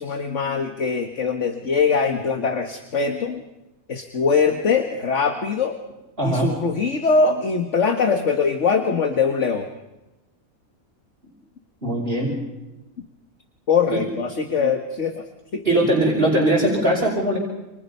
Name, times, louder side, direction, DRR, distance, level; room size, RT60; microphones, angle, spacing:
voice 1, 0.0-3.4 3.9-5.8 6.2-9.7 13.7-15.2 15.5-15.9, left 5 dB, 55° left, 6 dB, 1.9 m, -22 dB
voice 2, 6.2-6.6 11.8-12.4 13.9-14.0 15.6-17.4, right 1 dB, 40° right, -4 dB, 5.7 m, -20 dB
29.0 x 28.5 x 5.6 m, 1.0 s
omnidirectional pair, 1.5 m